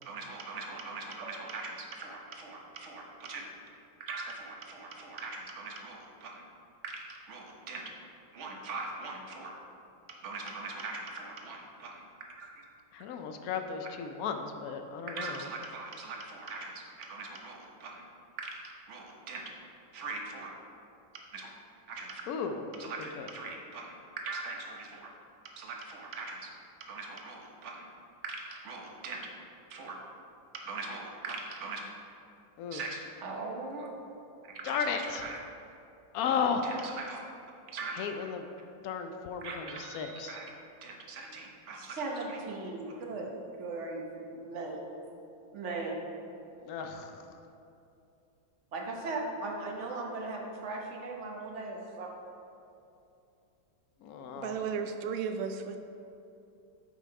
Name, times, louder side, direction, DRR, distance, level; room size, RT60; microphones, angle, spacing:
voice 1, 0.0-3.5 4.0-6.4 6.8-7.9 8.3-9.5 10.1-12.0 12.4-12.5 15.1-18.0 18.4-19.5 19.9-20.5 21.3-21.5 21.9-22.2 22.8-25.1 25.6-26.5 26.8-27.9 28.2-29.3 29.7-30.0 30.5-31.8 32.7-33.9 34.5-35.4 36.2-37.2 37.7-38.1 39.4-40.5 40.8-43.3 43.6-44.8 45.5-45.9 48.7-52.1, right 3 dB, 50° right, 0 dB, 1.0 m, -40 dB
voice 2, 12.9-15.5 22.3-23.3 32.6-32.9 34.6-35.2 36.1-36.6 37.9-38.5 38.8-40.4 46.6-47.1 54.0-54.6, left 6 dB, 80° left, 6 dB, 0.8 m, -34 dB
voice 3, 54.4-55.8, right 6 dB, 80° right, 7 dB, 0.7 m, -34 dB
7.3 x 5.5 x 4.7 m, 2.7 s
omnidirectional pair, 2.1 m